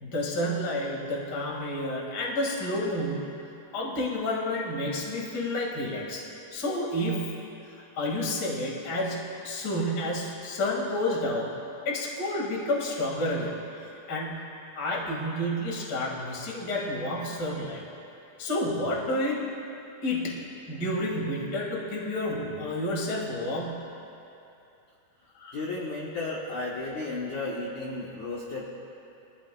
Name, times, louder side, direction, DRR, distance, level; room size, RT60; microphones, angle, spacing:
voice 1, 0.0-3.2 3.7-6.2 6.5-7.4 7.9-11.6 11.8-17.8 18.4-19.4 20.0-23.9 25.3-25.5, left 1 dB, 40° left, -3 dB, 1.5 m, -30 dB
voice 2, 25.5-28.7, left 2 dB, 70° left, -4 dB, 1.8 m, -33 dB
23.5 x 14.0 x 2.3 m, 2.8 s
omnidirectional pair, 5.0 m